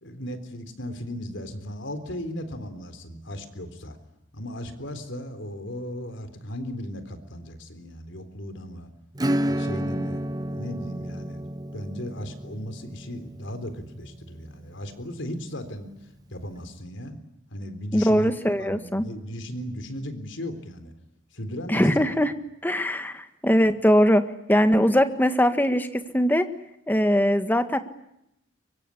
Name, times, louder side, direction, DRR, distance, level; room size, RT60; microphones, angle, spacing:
voice 1, 0.0-4.0 4.3-8.9 9.4-11.5 11.7-17.2 17.5-18.3 18.6-20.9 21.3-22.1, equal, 70° left, 10 dB, 3.8 m, -36 dB
Acoustic guitar / Strum, 9.2-15.4, right 1 dB, 20° right, 1.0 m, -31 dB
voice 2, 17.9-19.0 21.7-22.3 22.6-26.5 26.9-27.8, equal, 10° left, 9 dB, 1.6 m, -21 dB
24.0 x 23.5 x 9.9 m, 0.81 s
head